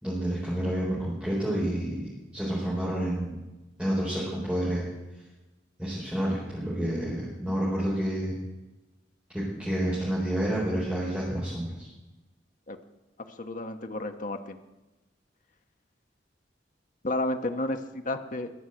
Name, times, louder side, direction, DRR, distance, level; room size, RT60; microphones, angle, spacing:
voice 1, 0.0-3.3 3.8-4.9 5.8-8.4 9.3-11.9, right 1 dB, 5° right, -8 dB, 4.4 m, -29 dB
voice 2, 13.4-14.6 17.0-18.5, left 2 dB, 45° left, 6 dB, 1.0 m, -31 dB
21.5 x 7.1 x 7.9 m, 1.1 s
head